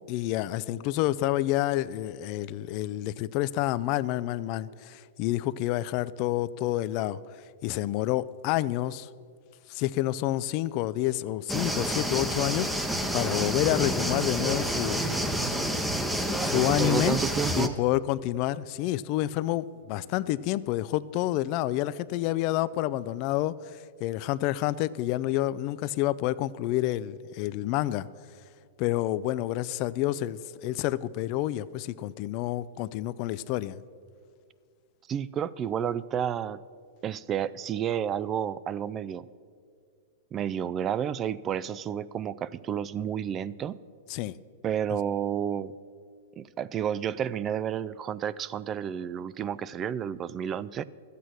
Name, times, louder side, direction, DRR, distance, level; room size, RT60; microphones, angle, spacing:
voice 1, 0.1-7.2 7.6-9.1 9.7-15.8 16.4-17.2 17.5-28.1 28.8-33.8 44.1-44.4, left 15 dB, 45° left, 17 dB, 0.4 m, -29 dB
sound 1, 11.5-17.7, equal, 5° right, 0.8 m, -29 dB
voice 2, 16.4-17.8 35.1-36.6 37.0-39.3 40.3-43.8 44.6-45.7 46.4-50.8, right 9 dB, 30° right, 17 dB, 0.3 m, -31 dB
12.5 x 8.3 x 6.2 m, 2.2 s
hypercardioid pair, 115°, 0 cm